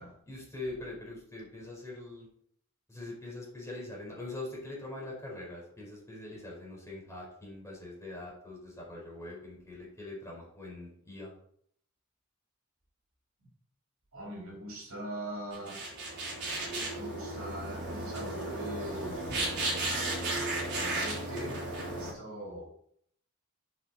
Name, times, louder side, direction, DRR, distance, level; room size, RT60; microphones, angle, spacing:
voice 1, 0.3-2.3 2.9-11.3, left 2 dB, 15° left, -3 dB, 4.3 m, -43 dB
voice 2, 14.1-15.8 16.9-19.3 20.7-21.6 21.9-22.7, right 1 dB, 70° right, -3 dB, 4.0 m, -42 dB
sound 1, 15.5-22.1, right 2 dB, 55° right, 4.0 m, -34 dB
8.2 x 7.3 x 4.2 m, 0.64 s
head